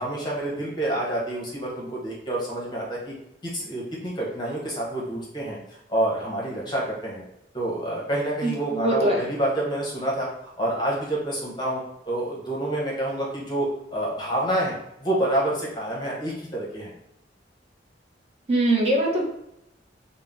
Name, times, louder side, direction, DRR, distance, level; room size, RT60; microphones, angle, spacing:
voice 1, 0.0-3.1 3.4-7.2 7.5-16.9, right 1 dB, 25° left, -4 dB, 0.7 m, -28 dB
voice 2, 8.4-9.2 18.5-19.2, right 1 dB, 35° right, -1 dB, 0.6 m, -22 dB
2.6 x 2.0 x 3.4 m, 0.81 s
head